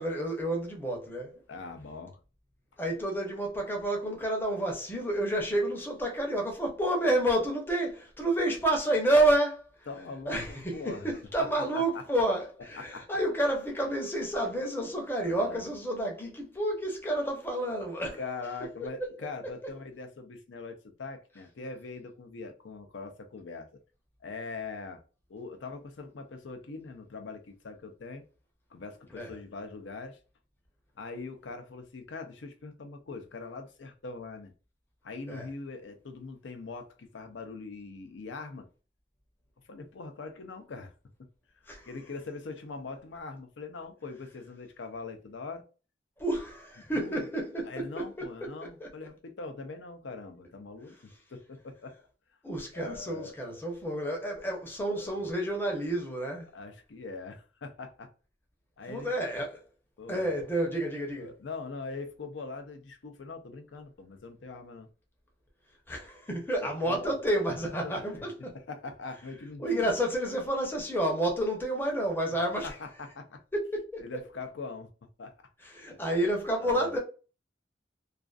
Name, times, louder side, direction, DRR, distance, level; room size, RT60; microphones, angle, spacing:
voice 1, 0.0-1.4 2.8-9.7 10.3-18.2 29.1-29.3 35.3-35.5 41.7-41.9 46.2-48.3 48.6-48.9 52.4-56.5 58.9-59.6 60.1-61.3 65.9-68.5 69.6-72.8 73.5-74.0 75.6-77.0, right 1 dB, 10° left, 0.6 m, -30 dB
voice 2, 1.5-2.2 9.9-11.1 11.4-12.0 12.8-13.1 15.2-15.6 18.2-23.7 24.2-25.0 25.3-28.2 28.7-30.2 31.0-34.5 35.0-38.7 39.7-40.9 41.9-45.6 46.8-47.2 47.7-51.9 52.7-53.3 54.9-55.2 56.5-58.1 58.8-59.1 60.0-60.3 61.2-64.9 66.8-67.2 67.7-68.3 68.5-70.0 72.6-73.4 74.0-74.9 75.2-75.3 75.9-76.0 76.5-77.0, left 3 dB, 85° left, 0.5 m, -42 dB
2.4 x 2.4 x 2.3 m
head